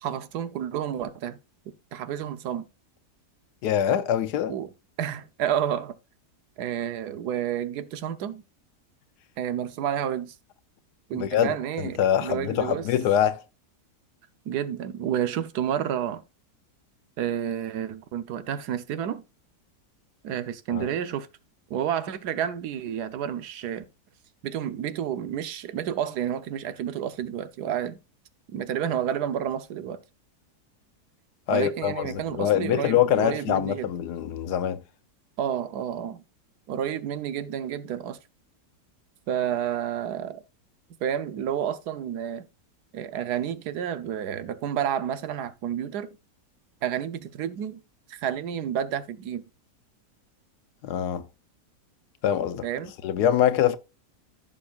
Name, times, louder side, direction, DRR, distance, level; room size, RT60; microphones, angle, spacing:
voice 1, 0.0-1.4 1.9-2.7 4.5-4.7 5.0-6.0 6.6-8.4 9.4-10.4 11.1-12.9 14.4-16.2 17.2-19.2 20.2-21.3 21.7-23.8 24.4-28.0 28.5-30.0 31.5-33.9 35.4-36.2 36.7-38.2 39.3-40.4 41.0-42.5 42.9-46.2 46.8-47.8 48.1-49.4 52.6-52.9, right 9 dB, 75° right, 1.3 m, -30 dB
voice 2, 3.6-4.5 11.1-13.4 20.7-20.9 31.5-34.8 50.8-51.3 52.2-52.7 53.0-53.8, left 10 dB, 85° left, 1.3 m, -24 dB
15.0 x 6.3 x 2.4 m
omnidirectional pair, 1.7 m